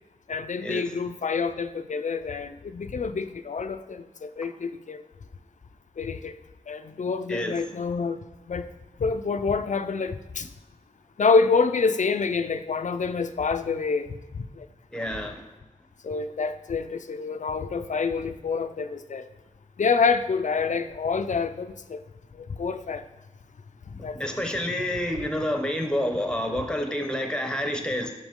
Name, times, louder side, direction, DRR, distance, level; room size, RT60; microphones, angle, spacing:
voice 1, 0.3-5.0 6.0-6.3 6.7-8.2 8.5-8.7 9.0-10.5 11.2-14.7 16.0-19.3 19.8-22.0 22.4-23.0 23.9-24.2, left 4 dB, 70° left, 10 dB, 0.4 m, -27 dB
voice 2, 14.9-15.5 24.1-28.1, equal, 5° left, 4 dB, 0.9 m, -28 dB
5.9 x 5.0 x 3.6 m, 1.1 s
wide cardioid pair, 70°, 13 cm